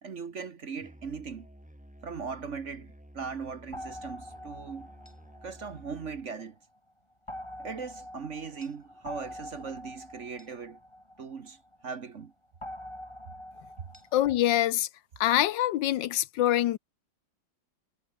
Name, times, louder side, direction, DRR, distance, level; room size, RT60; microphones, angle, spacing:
voice 1, 0.0-1.5 2.0-4.9 5.4-6.6 7.6-10.8 11.2-12.3, right 5 dB, 45° right, 1.3 m, -39 dB
Musical instrument, 0.8-6.3, equal, 5° right, 3.9 m, -52 dB
sound 1, 3.7-6.5 7.3-11.8 12.6-14.4, left 1 dB, 15° left, 6.6 m, -45 dB
voice 2, 14.1-14.9 15.2-16.8, left 13 dB, 75° left, 1.3 m, -25 dB
omnidirectional pair, 2.1 m